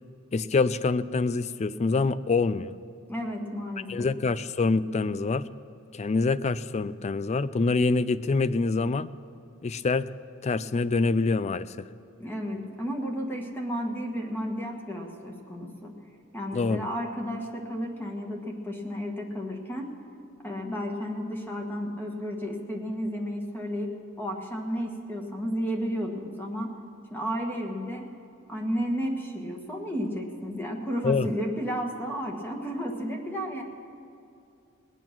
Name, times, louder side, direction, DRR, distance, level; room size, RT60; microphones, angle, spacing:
voice 1, 0.3-2.7 3.9-5.5 5.9-9.1 9.6-10.1 10.4-11.8 16.5-16.9 31.0-31.3, left 3 dB, 30° left, 16 dB, 0.4 m, -25 dB
voice 2, 3.1-4.1 12.2-15.9 16.3-19.9 20.4-23.9 24.2-26.7 27.1-28.1 28.5-33.6, equal, 10° left, 0 dB, 1.5 m, -32 dB
20.0 x 9.1 x 6.0 m, 2.6 s
head